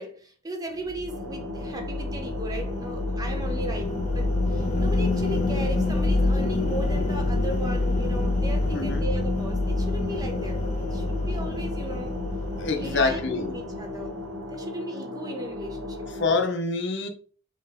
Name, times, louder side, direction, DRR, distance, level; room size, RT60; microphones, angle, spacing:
voice 1, 0.0-12.2 12.7-14.2 14.5-16.4, right 1 dB, 20° right, 0.8 m, -37 dB
sound 1, 0.9-14.4, left 2 dB, 35° left, 0.9 m, -27 dB
sound 2, 1.1-16.4, left 1 dB, 65° right, 1.3 m, -37 dB
voice 2, 8.7-9.1 12.6-13.5 16.2-17.1, left 3 dB, 60° left, 0.8 m, -26 dB
4.4 x 3.1 x 3.6 m
head